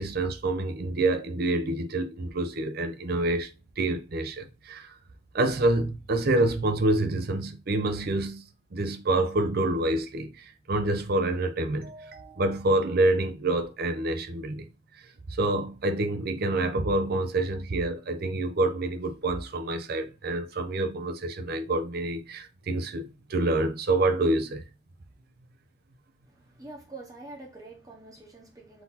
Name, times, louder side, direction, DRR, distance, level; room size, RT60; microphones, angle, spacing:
voice 1, 0.0-3.5 3.8-4.9 5.3-8.4 8.7-14.7 15.4-24.6, right 2 dB, 50° right, 0.6 m, -27 dB
voice 2, 26.2-28.8, right 2 dB, 20° right, 1.1 m, -45 dB
3.9 x 2.8 x 4.0 m
head